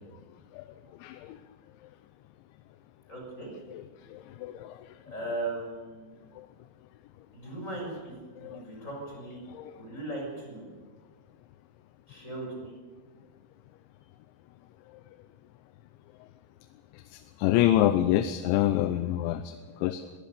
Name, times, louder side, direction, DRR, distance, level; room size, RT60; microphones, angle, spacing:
voice 1, 3.1-3.5 5.1-6.3 7.3-9.4 9.7-10.7 12.1-12.8, right 2 dB, 15° left, -1 dB, 6.4 m, -38 dB
voice 2, 4.1-4.7 8.4-8.6 9.5-9.7 17.4-19.6 19.8-20.1, left 13 dB, 85° left, 11 dB, 3.1 m, -26 dB
21.5 x 18.0 x 6.9 m, 1.5 s
omnidirectional pair, 5.2 m